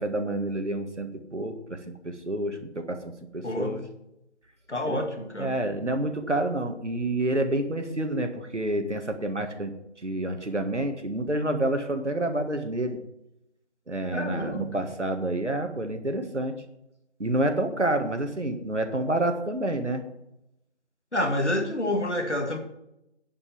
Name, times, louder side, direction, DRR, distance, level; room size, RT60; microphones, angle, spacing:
voice 1, 0.0-3.8 4.8-5.0 5.4-9.7 10.0-13.0 13.9-16.6 17.2-20.0, right 1 dB, 90° right, 6 dB, 1.7 m, -28 dB
voice 2, 3.4-3.8 4.7-5.5 14.1-14.7 21.1-22.6, left 1 dB, 85° left, 5 dB, 1.9 m, -28 dB
9.8 x 5.6 x 7.0 m, 0.85 s
figure-of-eight pair, 180°, 34 cm